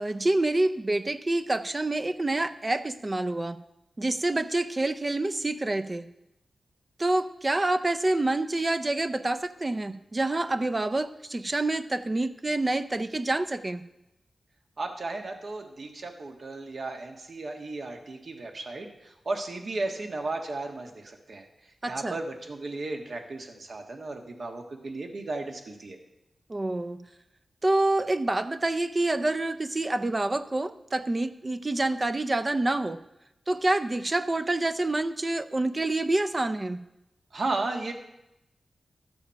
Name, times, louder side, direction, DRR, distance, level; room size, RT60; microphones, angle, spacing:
voice 1, 0.0-3.6 4.0-6.1 7.0-13.8 21.8-22.2 26.5-27.0 27.6-33.0 33.5-36.8, right 2 dB, 30° right, 10 dB, 0.5 m, -27 dB
voice 2, 14.8-21.5 21.9-26.0 37.3-37.9, right 2 dB, 65° right, 4 dB, 1.5 m, -35 dB
12.5 x 7.0 x 5.8 m, 0.89 s
wide cardioid pair, 75°, 0 cm